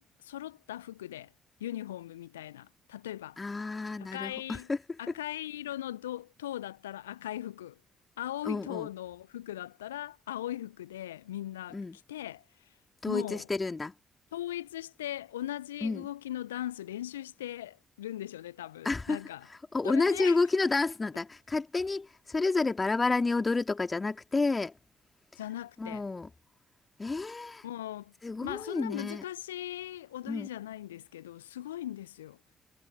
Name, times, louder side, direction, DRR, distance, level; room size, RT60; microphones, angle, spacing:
voice 1, 0.0-1.3 1.6-3.4 3.9-4.7 5.0-7.8 8.2-11.8 12.1-12.4 13.1-13.5 14.3-19.5 19.8-20.4 25.4-26.0 27.6-28.1 28.4-32.4, left 13 dB, 80° left, 0.9 m, -39 dB
voice 2, 3.4-4.8 8.4-8.9 11.7-12.0 13.0-13.9 15.8-16.1 18.8-19.2 19.7-24.7 25.8-26.3 27.0-27.6 28.2-29.2 30.3-30.5, left 3 dB, 25° left, 2.5 m, -30 dB
figure-of-eight pair, 40°, 0 cm